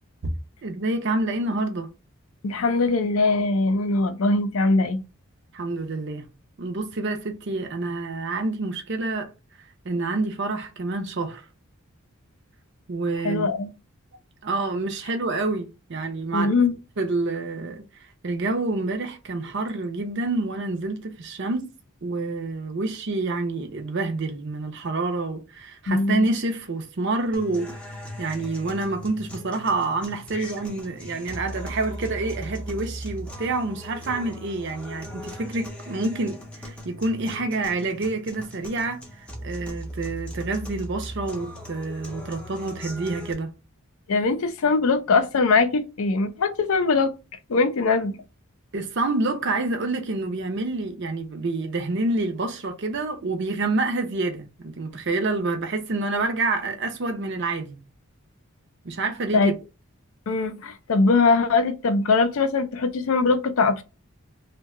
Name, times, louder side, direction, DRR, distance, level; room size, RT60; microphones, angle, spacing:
voice 1, 0.6-1.9 5.5-6.3 6.6-9.3 9.6-11.5 12.9-13.5 14.4-16.5 17.0-21.7 22.0-43.5 48.7-57.8 58.8-59.5, right 2 dB, 50° right, 0.5 m, -28 dB
voice 2, 2.4-5.0 13.2-13.7 16.3-16.7 25.9-26.2 44.1-47.1 47.5-48.1 59.3-59.5 60.3-63.8, left 3 dB, 70° left, 0.4 m, -21 dB
sound 1, 27.3-43.3, equal, 5° left, 0.5 m, -38 dB
2.7 x 2.2 x 3.6 m
head